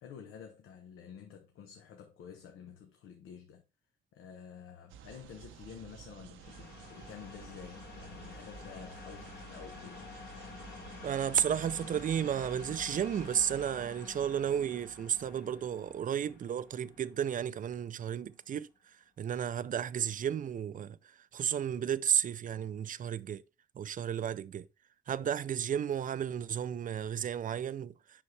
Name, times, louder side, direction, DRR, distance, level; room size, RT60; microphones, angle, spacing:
voice 1, 0.0-3.6 4.1-10.1, left 7 dB, 85° left, 0.9 m, -50 dB
sound 1, 4.9-13.7, right 9 dB, 80° right, 0.7 m, -53 dB
sound 2, 6.4-18.0, left 4 dB, 55° left, 1.6 m, -49 dB
voice 2, 11.0-18.7 19.2-21.0 21.3-23.4 23.8-24.7 25.1-27.9, right 9 dB, 40° right, 0.4 m, -33 dB
7.1 x 5.5 x 3.3 m
cardioid pair, 90°, 20 cm